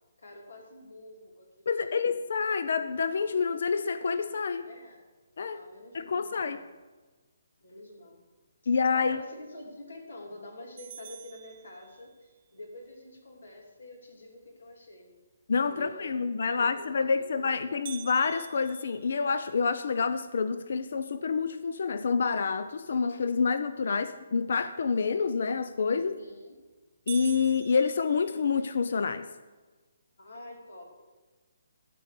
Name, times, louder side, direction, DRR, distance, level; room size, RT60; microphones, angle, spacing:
voice 1, 0.2-2.0 4.7-5.0 5.4-6.7 7.6-8.2 8.9-15.1 15.6-17.6 26.1-26.6 30.2-31.0, left 1 dB, 85° left, 1 dB, 2.9 m, -47 dB
voice 2, 1.7-4.7 5.4-5.6 5.9-6.6 8.7-9.2 15.5-26.1 27.1-29.3, left 5 dB, 60° left, 11 dB, 0.5 m, -28 dB
sound 1, 10.8-12.3 17.8-20.0 20.5-20.6 21.1-21.2 21.9-22.2 25.8-26.2 26.6-26.7 27.1-28.8, right 10 dB, 30° right, 1.0 m, -46 dB
13.5 x 4.6 x 8.2 m, 1.3 s
hypercardioid pair, 165°, 0 cm